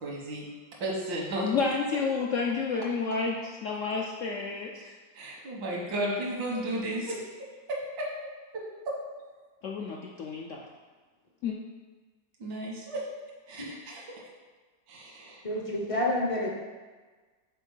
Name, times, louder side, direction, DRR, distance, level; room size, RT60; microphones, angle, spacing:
voice 1, 0.0-0.4 0.8-1.5 5.2-7.2 7.7-8.1 8.5-8.6 12.4-13.0 13.5-14.0 14.9-15.4, right 1 dB, 85° right, -2 dB, 1.9 m, -33 dB
voice 2, 1.4-4.9 9.6-10.6 11.4-11.6, left 5 dB, 75° left, 0 dB, 0.7 m, -30 dB
voice 3, 15.4-16.5, left 1 dB, 40° left, -2 dB, 0.4 m, -29 dB
5.8 x 4.4 x 5.5 m, 1.4 s
omnidirectional pair, 2.0 m